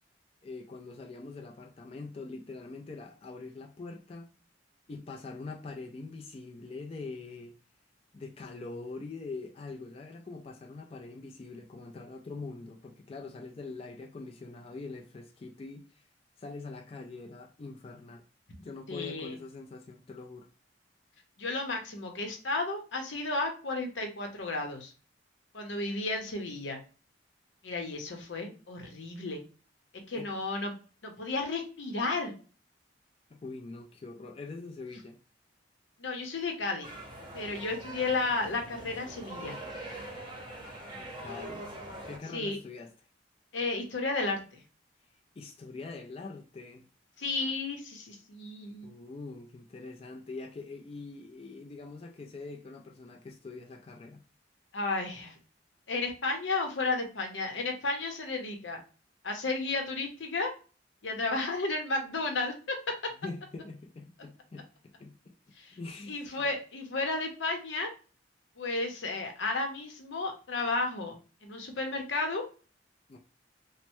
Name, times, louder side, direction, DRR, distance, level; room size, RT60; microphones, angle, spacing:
voice 1, 0.4-4.3 4.9-7.6 8.1-16.0 16.4-18.2 18.6-20.5 30.1-30.3 33.3-35.2 40.9-41.8 42.0-42.9 45.4-46.9 48.8-54.2 63.2-66.5 73.1-73.2, left 3 dB, 30° left, 0.3 m, -43 dB
voice 2, 18.9-19.3 21.4-24.9 25.5-26.8 27.6-29.4 30.1-30.7 31.0-32.3 36.0-36.9 37.3-39.6 42.3-42.6 43.5-44.6 47.2-48.9 54.7-55.4 55.9-58.8 59.2-60.5 61.0-62.8 65.6-65.8 66.1-67.9 68.6-71.1 71.4-72.4, left 3 dB, 85° left, 0.8 m, -33 dB
sound 1, 36.8-42.2, right 1 dB, 25° right, 0.8 m, -43 dB
3.1 x 2.1 x 2.9 m
head